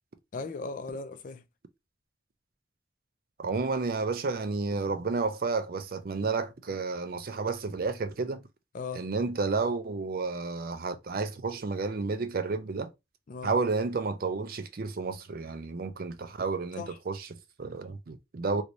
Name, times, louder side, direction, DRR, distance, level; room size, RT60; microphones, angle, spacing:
voice 1, 0.3-1.4 6.7-6.8 8.7-9.1 13.3-13.5 16.8-17.0 17.9-18.0, left 4 dB, 50° left, 0.4 m, -38 dB
voice 2, 3.4-8.4 9.0-12.9 13.4-18.6, right 4 dB, 55° right, 0.5 m, -31 dB
3.1 x 2.6 x 3.0 m
head